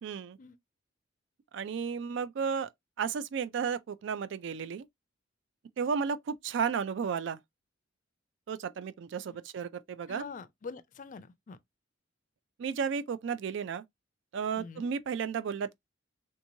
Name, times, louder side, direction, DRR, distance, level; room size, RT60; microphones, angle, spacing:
voice 1, 0.0-0.4 1.5-2.7 3.0-4.9 5.8-7.4 8.5-10.2 12.6-13.8 14.3-15.8, right 6 dB, 65° right, 0.3 m, -33 dB
voice 2, 10.1-11.6 14.5-14.9, left 4 dB, 40° left, 0.4 m, -45 dB
3.5 x 2.9 x 2.6 m
head